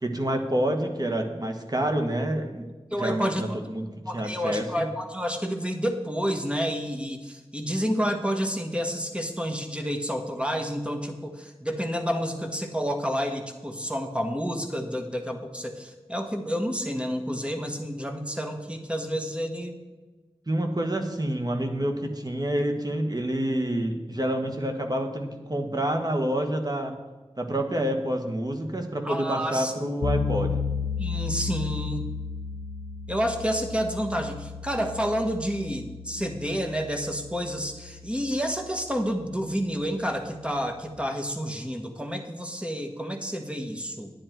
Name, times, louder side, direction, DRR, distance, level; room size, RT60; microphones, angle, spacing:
voice 1, 0.0-3.9 4.1-4.9 20.5-26.9 27.4-30.6, right 1 dB, 40° right, 4 dB, 1.6 m, -28 dB
voice 2, 2.9-3.6 4.1-19.8 29.0-29.7 31.0-32.0 33.1-44.1, equal, 10° right, 4 dB, 1.5 m, -29 dB
sound 1, 30.0-40.9, left 5 dB, 90° left, 0.7 m, -34 dB
10.5 x 9.7 x 4.6 m, 1.2 s
wide cardioid pair, 55°, 11 cm